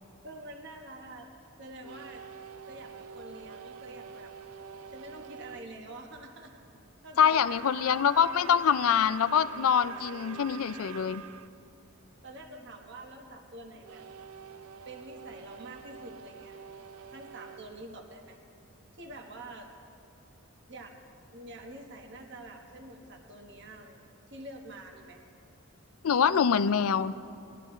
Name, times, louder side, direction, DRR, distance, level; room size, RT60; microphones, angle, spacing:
voice 1, 0.2-1.3 1.6-2.3 2.7-4.3 4.9-6.6 7.0-7.6 12.2-14.0 14.9-16.6 17.1-18.4 18.9-19.7 20.7-21.0 21.3-25.2, right 2 dB, 50° right, 3 dB, 1.1 m, -46 dB
sound 1, 1.8-5.7 7.3-11.5 13.8-18.7, right 6 dB, 75° right, 0.4 m, -46 dB
voice 2, 7.2-11.2 26.0-27.1, left 7 dB, 75° left, 15 dB, 0.4 m, -25 dB
20.5 x 12.0 x 3.1 m, 2.8 s
head